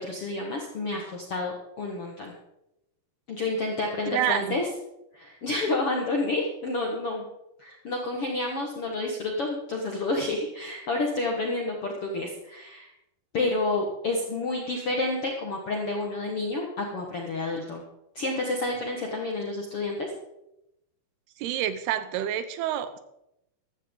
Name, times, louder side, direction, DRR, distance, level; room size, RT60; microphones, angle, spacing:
voice 1, 0.0-2.3 3.3-4.7 5.1-7.2 7.6-12.9 13.3-17.8 18.1-20.1, left 2 dB, 60° left, 0 dB, 1.4 m, -29 dB
voice 2, 4.1-4.6 21.4-23.0, right 11 dB, 80° right, 12 dB, 2.7 m, -28 dB
15.5 x 12.5 x 3.8 m, 0.84 s
omnidirectional pair, 4.8 m